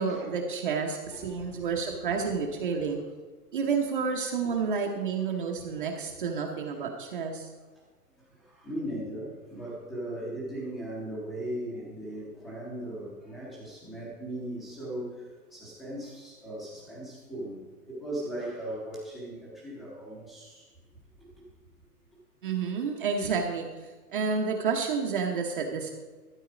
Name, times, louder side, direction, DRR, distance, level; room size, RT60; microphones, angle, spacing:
voice 1, 0.0-3.0 3.5-7.5 22.4-23.7 24.1-25.9, right 5 dB, 35° right, 1 dB, 0.9 m, -30 dB
voice 2, 1.0-2.3 2.8-3.0 4.4-4.7 5.3-6.0 6.7-6.9 8.4-20.7 23.2-23.3, right 1 dB, 5° left, -10 dB, 0.7 m, -39 dB
13.0 x 7.8 x 5.0 m, 1.3 s
hypercardioid pair, 170°, 47 cm